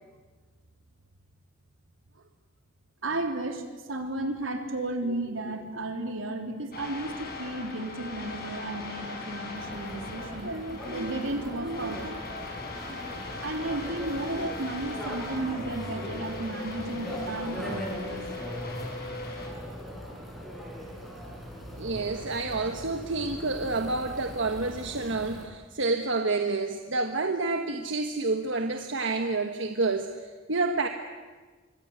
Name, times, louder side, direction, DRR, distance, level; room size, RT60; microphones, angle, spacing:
voice 1, 3.0-12.3 12.9-13.0 13.4-18.5, right 2 dB, 85° right, 4 dB, 3.5 m, -33 dB
sound 1, 6.7-19.5, left 3 dB, 50° left, 6.5 m, -39 dB
sound 2, 9.6-25.5, equal, ahead, 7.2 m, -41 dB
voice 2, 21.8-30.9, right 3 dB, 65° right, 6 dB, 1.4 m, -29 dB
26.0 x 24.0 x 8.1 m, 1.4 s
head